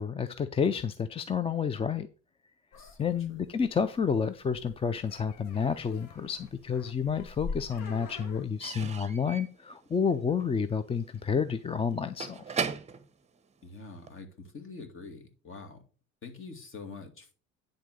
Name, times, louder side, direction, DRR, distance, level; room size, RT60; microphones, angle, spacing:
voice 1, 0.0-2.1 3.0-12.6, left 6 dB, 15° left, 0.5 m, -30 dB
sound 1, 2.7-8.4, left 4 dB, 65° left, 1.7 m, -45 dB
voice 2, 2.7-3.4 13.6-15.8 16.2-17.3, left 4 dB, 40° left, 2.4 m, -45 dB
Slam / Squeak / Wood, 6.4-7.2 7.4-14.2, right 6 dB, 20° right, 0.9 m, -40 dB
10.0 x 3.9 x 6.4 m
supercardioid pair, 105°, 33 cm